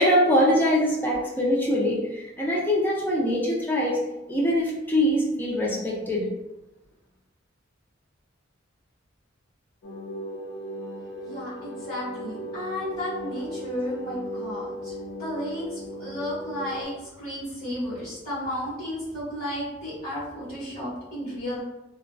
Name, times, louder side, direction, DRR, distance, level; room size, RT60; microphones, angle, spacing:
voice 1, 0.0-4.0 4.3-6.3, equal, 10° left, -4 dB, 0.5 m, -23 dB
sound 1, 9.8-16.9, equal, 75° left, 0.4 m, -37 dB
voice 2, 11.2-14.9 15.2-21.6, left 1 dB, 35° left, -12 dB, 1.2 m, -33 dB
2.5 x 2.2 x 2.2 m, 0.98 s
head